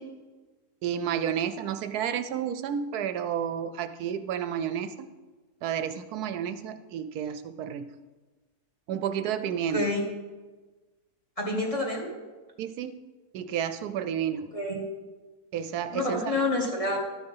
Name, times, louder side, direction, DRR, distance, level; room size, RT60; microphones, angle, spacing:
voice 1, 0.8-5.1 5.6-7.9 8.9-9.9 12.6-13.0 13.3-14.5 15.5-16.2, right 8 dB, 75° right, 11 dB, 1.1 m, -31 dB
voice 2, 11.4-12.2 14.5-14.8 15.9-17.0, left 2 dB, 20° left, -1 dB, 1.9 m, -28 dB
12.5 x 6.6 x 5.5 m, 1.3 s
omnidirectional pair, 1.7 m